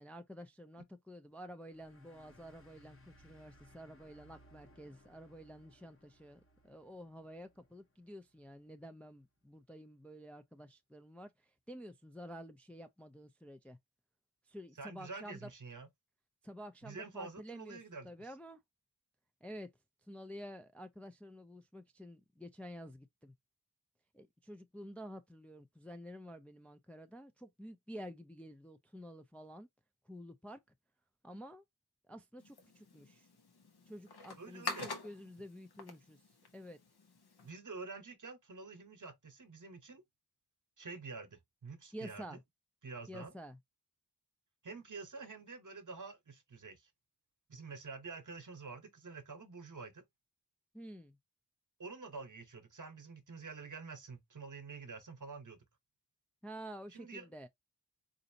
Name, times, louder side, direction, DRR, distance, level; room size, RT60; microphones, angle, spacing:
voice 1, 0.0-13.8 14.5-15.5 16.4-17.8 18.0-18.6 19.4-19.7 20.1-23.3 24.1-29.7 30.1-30.6 31.2-31.6 32.1-33.3 33.9-36.2 36.5-36.8 41.9-42.4 43.1-43.6 50.7-51.2 56.4-57.5, equal, 5° left, 0.4 m, -50 dB
sound 1, 1.7-8.7, equal, 35° left, 0.9 m, -64 dB
voice 2, 14.8-15.9 16.8-18.1 34.4-34.9 37.4-40.0 40.8-42.4 42.8-43.3 44.6-46.9 47.5-50.0 51.8-55.6 56.9-57.3, right 4 dB, 50° right, 0.9 m, -48 dB
sound 2, 32.4-37.5, left 4 dB, 80° left, 0.8 m, -47 dB
4.0 x 2.5 x 2.6 m
wide cardioid pair, 65°, 38 cm